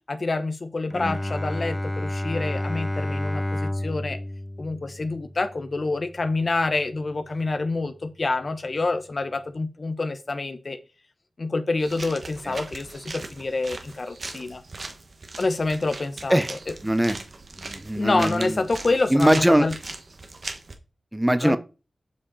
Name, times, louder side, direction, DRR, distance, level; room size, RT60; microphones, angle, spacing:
voice 1, 0.1-4.2 4.6-10.8 11.4-14.6 15.4-16.7 18.0-19.7 21.4-21.6, left 3 dB, 55° left, 1.0 m, -27 dB
Bowed string instrument, 0.9-6.6, left 1 dB, 10° left, 0.4 m, -30 dB
sound 1, 11.8-20.7, right 3 dB, 55° right, 1.3 m, -39 dB
voice 2, 16.8-17.2 17.6-18.6 19.1-19.7 21.1-21.6, right 1 dB, 10° right, 0.8 m, -21 dB
8.4 x 5.0 x 4.2 m
cardioid pair, 55°, 0 cm